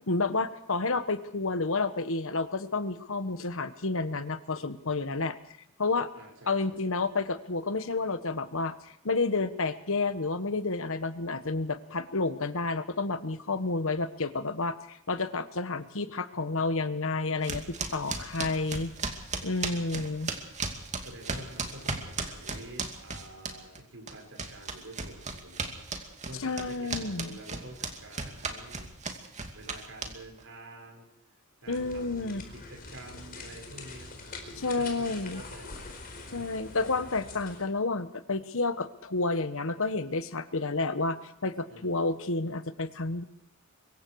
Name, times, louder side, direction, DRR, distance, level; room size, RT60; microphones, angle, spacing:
voice 1, 0.1-5.4 5.8-6.1 6.5-8.7 9.0-18.9 19.4-20.3 26.4-27.4 31.7-32.4 34.6-35.4 36.3-43.2, left 3 dB, 65° left, 11 dB, 1.3 m, -30 dB
voice 2, 6.1-7.0 21.0-28.9 29.5-31.1 31.6-35.8 41.7-42.0, right 1 dB, 65° right, 2 dB, 6.1 m, -48 dB
sound 1, 17.4-23.8 24.1-30.4, right 4 dB, 35° right, 2.5 m, -35 dB
sound 2, 31.6-37.7, left 3 dB, 45° left, 4.6 m, -44 dB
24.5 x 22.5 x 4.8 m, 0.74 s
head